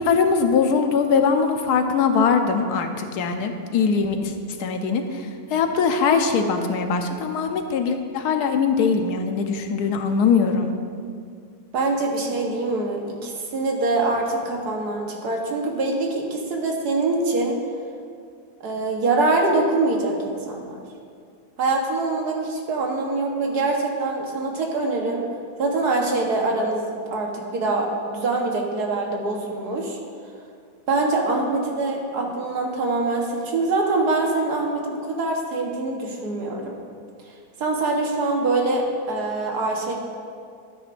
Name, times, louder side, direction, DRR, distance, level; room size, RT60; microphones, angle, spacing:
voice 1, 0.0-4.3 4.6-5.2 5.5-10.7, left 5 dB, 90° left, 6 dB, 1.3 m, -21 dB
voice 2, 11.7-17.6 18.6-20.8 21.6-25.2 25.6-30.0 30.9-36.7 37.6-39.9, right 2 dB, 85° right, 0 dB, 1.8 m, -24 dB
12.5 x 9.3 x 2.6 m, 2.3 s
omnidirectional pair, 1.6 m